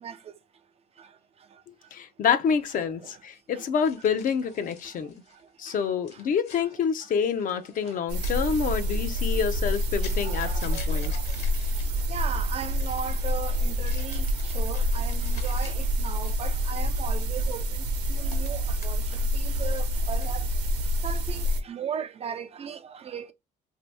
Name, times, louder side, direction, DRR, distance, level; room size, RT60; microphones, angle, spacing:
voice 1, 1.9-5.1 5.6-11.1, left 7 dB, 55° left, 0.5 m, -27 dB
sound 1, 2.6-2.7 3.8-5.5 6.0-16.5 17.7-19.4 19.7-20.4, left 7 dB, 75° left, 1.3 m, -50 dB
sound 2, 8.1-21.6, equal, 80° right, 0.9 m, -27 dB
voice 2, 10.2-10.8 11.1-11.2 12.1-17.6 18.1-19.0 19.3-20.4 21.0-23.3, right 7 dB, 35° right, 0.4 m, -37 dB
2.8 x 2.6 x 3.3 m
cardioid pair, 110°, 17 cm